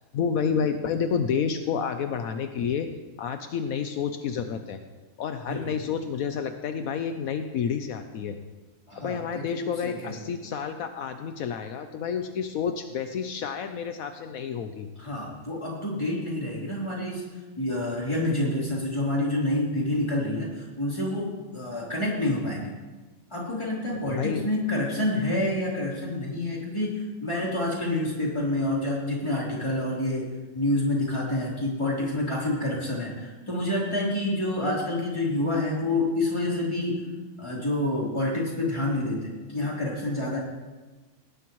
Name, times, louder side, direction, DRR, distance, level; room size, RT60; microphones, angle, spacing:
voice 1, 0.0-2.9 3.2-4.8 5.2-8.4 9.0-14.9 23.9-24.5, left 7 dB, 80° left, 7 dB, 1.2 m, -29 dB
voice 2, 8.9-10.3 15.0-17.2 17.6-22.7 23.3-30.3 30.5-37.1 37.4-40.4, left 1 dB, 20° left, -5 dB, 3.7 m, -28 dB
18.0 x 11.5 x 3.1 m, 1.2 s
omnidirectional pair, 1.5 m